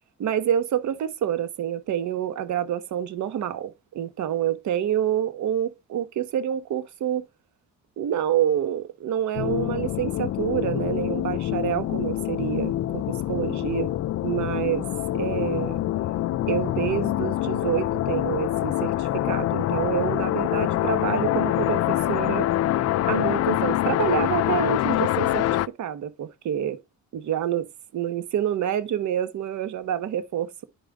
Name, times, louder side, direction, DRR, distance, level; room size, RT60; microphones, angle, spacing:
voice 1, 0.2-7.3 8.0-13.9 14.2-14.9 15.1-15.8 16.5-22.5 23.1-25.5 25.8-26.8 27.1-27.7 27.9-30.6, right 10 dB, 70° right, 1.2 m, -27 dB
sound 1, 9.3-25.7, left 14 dB, 55° left, 0.4 m, -25 dB
11.0 x 5.1 x 3.6 m
cardioid pair, 90°, 30 cm